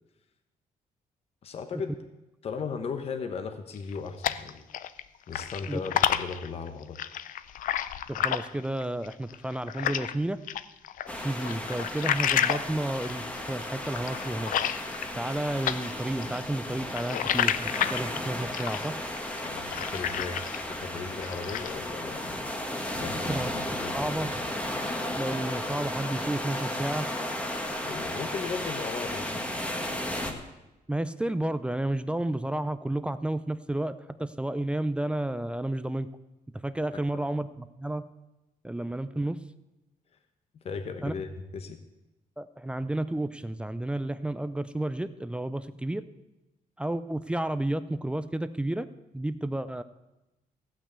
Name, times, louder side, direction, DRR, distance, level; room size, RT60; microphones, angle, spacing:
voice 1, 1.4-1.9 2.4-4.7 5.3-7.0 19.4-22.5 23.0-23.4 23.8-23.9 27.7-29.5 36.9-37.0 40.6-41.8, left 5 dB, 45° left, 7 dB, 1.0 m, -37 dB
sound 1, 3.7-5.0 5.3-10.1 10.5-15.4 15.6-20.8 21.1-21.8, left 10 dB, 65° left, 0.5 m, -30 dB
voice 2, 8.1-10.4 11.2-14.5 15.1-19.0 23.3-23.6 23.9-24.3 25.2-27.1 30.9-36.1 36.6-38.1 38.6-39.4 41.0-41.1 42.4-46.0 46.8-48.9 49.1-49.8, right 1 dB, 5° right, 13 dB, 0.4 m, -31 dB
sound 2, 11.1-30.3, left 1 dB, 10° left, 1.3 m, -34 dB
15.5 x 6.1 x 8.1 m, 0.99 s
cardioid pair, 155°, 15 cm